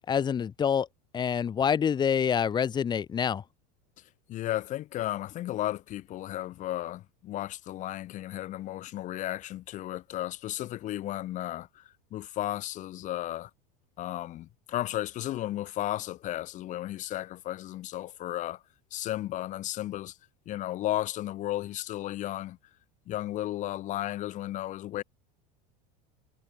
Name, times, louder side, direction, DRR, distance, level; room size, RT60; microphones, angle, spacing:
voice 1, 0.1-0.9 1.1-3.4, left 7 dB, 20° left, 3.6 m, -26 dB
voice 2, 4.3-11.8 12.1-13.5 14.0-18.6 18.9-20.2 20.5-22.6 23.1-25.0, left 14 dB, 35° left, 3.5 m, -34 dB
supercardioid pair, 155°, 21 cm